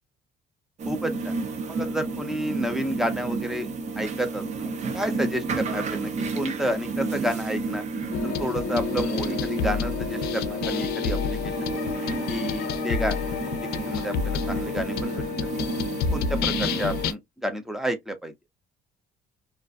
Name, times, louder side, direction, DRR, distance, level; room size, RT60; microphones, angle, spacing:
sound 1, 0.8-17.1, right 3 dB, 45° right, 0.6 m, -31 dB
voice 1, 0.9-1.3 1.7-3.7 3.9-4.7 4.9-7.8 8.2-11.5 12.3-13.2 13.6-15.2 15.9-18.3, equal, ahead, 0.6 m, -30 dB
sound 2, 8.1-17.1, left 7 dB, 70° left, 0.4 m, -29 dB
2.5 x 2.1 x 2.4 m
cardioid pair, 110°, 17 cm